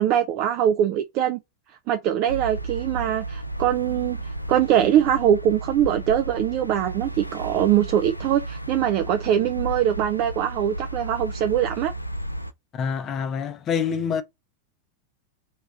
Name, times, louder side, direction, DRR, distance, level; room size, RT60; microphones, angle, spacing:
voice 1, 0.0-1.4 1.9-11.9, right 10 dB, 40° right, 0.4 m, -22 dB
sound 1, 2.3-12.5, right 1 dB, 90° left, 0.3 m, -33 dB
voice 2, 12.7-14.2, left 7 dB, 30° left, 0.6 m, -26 dB
3.5 x 3.0 x 2.8 m
figure-of-eight pair, 90°, 0 cm